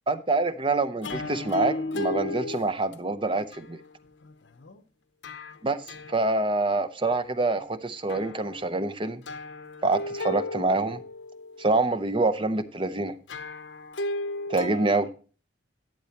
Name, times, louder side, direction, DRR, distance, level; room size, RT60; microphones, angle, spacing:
voice 1, 0.1-3.8 5.6-9.2 9.8-11.0 11.6-13.1 14.5-15.1, right 2 dB, 25° right, 0.6 m, -26 dB
sound 1, 1.0-2.6 2.9-4.8 5.2-5.6 5.9-6.2 7.1-7.2 7.6-7.7 8.1-8.6 9.3-12.0 13.3-15.0, left 2 dB, 70° left, 0.7 m, -35 dB
11.5 x 9.0 x 2.9 m
head